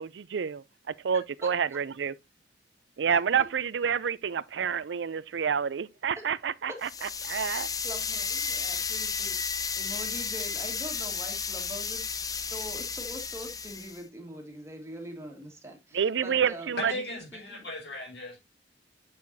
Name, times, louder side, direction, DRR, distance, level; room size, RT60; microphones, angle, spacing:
voice 1, 0.0-2.1 3.0-7.7 15.9-16.9, right 7 dB, 80° right, 0.4 m, -29 dB
voice 2, 1.4-1.8 3.1-3.5 6.7-6.8 7.8-12.1 12.5-17.7, right 1 dB, 15° right, 1.9 m, -43 dB
sound 1, 6.8-14.0, left 5 dB, 20° left, 0.5 m, -33 dB
voice 3, 16.8-18.4, left 1 dB, 75° left, 5.5 m, -37 dB
9.5 x 6.5 x 2.7 m
head